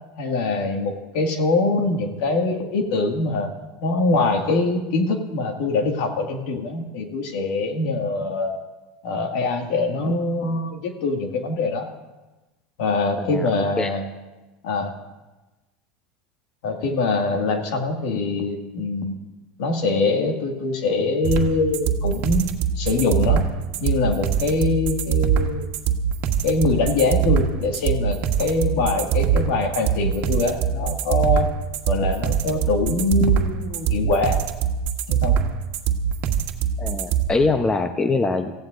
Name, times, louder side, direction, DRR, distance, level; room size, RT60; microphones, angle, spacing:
voice 1, 0.2-3.5 3.8-8.6 9.0-11.9 12.8-14.0 14.6-14.9 16.6-19.2 19.6-22.5 22.8-23.5 23.8-25.7 26.4-31.5 31.9-34.4 35.1-35.4, left 3 dB, 70° left, 3 dB, 2.0 m, -23 dB
voice 2, 13.2-13.5 13.8-13.9 36.8-38.5, left 3 dB, 15° left, 7 dB, 0.8 m, -23 dB
sound 1, 21.2-37.2, right 8 dB, 55° right, 1.3 m, -22 dB
26.5 x 16.0 x 2.6 m, 1.1 s
supercardioid pair, 120°, 4 cm